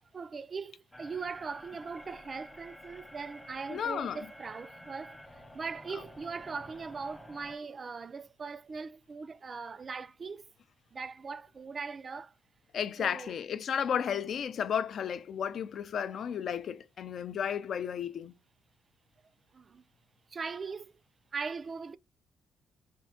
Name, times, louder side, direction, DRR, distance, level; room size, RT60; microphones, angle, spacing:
voice 1, 0.1-10.5 10.9-12.3 13.0-13.3 14.0-14.1 19.5-19.8 20.3-20.9 21.3-22.0, right 5 dB, 40° right, 0.3 m, -40 dB
sound 1, 0.9-7.6, left 1 dB, 10° left, 0.6 m, -51 dB
voice 2, 3.7-4.3 12.7-18.3, left 8 dB, 60° left, 0.4 m, -33 dB
3.4 x 2.6 x 3.6 m
cardioid pair, 90°, 0 cm